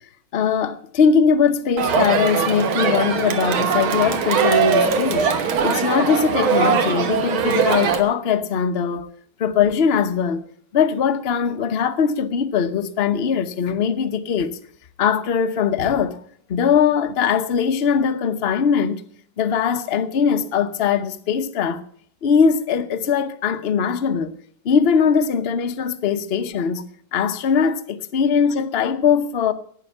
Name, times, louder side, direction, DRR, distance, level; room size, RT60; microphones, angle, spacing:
voice 1, 0.3-5.3 5.6-9.1 9.4-10.4 10.7-14.5 15.0-16.2 16.5-19.0 19.4-21.8 22.2-24.3 24.6-26.8 27.1-29.5, left 6 dB, 50° left, 0.7 m, -20 dB
Crowd, 1.8-8.0, right 6 dB, 90° right, 2.1 m, -20 dB
11.5 x 9.3 x 8.6 m
omnidirectional pair, 2.2 m